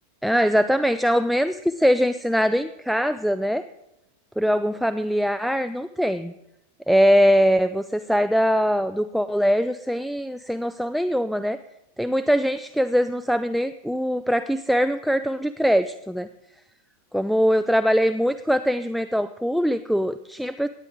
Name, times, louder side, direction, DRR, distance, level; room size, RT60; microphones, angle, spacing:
voice 1, 0.2-3.6 4.4-6.3 6.9-11.6 12.0-16.3 17.1-20.7, equal, ahead, 10 dB, 0.4 m, -22 dB
17.0 x 9.4 x 3.7 m, 0.91 s
figure-of-eight pair, 90°, 0 cm